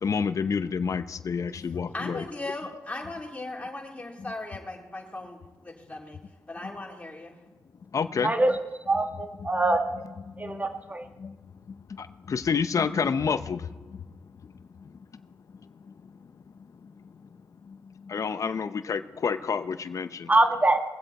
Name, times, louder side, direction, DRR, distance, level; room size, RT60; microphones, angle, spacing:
voice 1, 0.0-2.2 7.9-8.3 9.7-9.8 10.4-10.5 11.2-11.3 12.3-13.6 18.1-20.3, left 6 dB, 55° left, 0.7 m, -28 dB
voice 2, 1.9-6.2 6.5-7.4, left 2 dB, 20° left, 3.5 m, -38 dB
voice 3, 8.9-9.8 10.4-11.0 20.3-20.8, right 2 dB, 25° right, 1.5 m, -23 dB
21.5 x 7.9 x 4.2 m
cardioid pair, 65°, 7 cm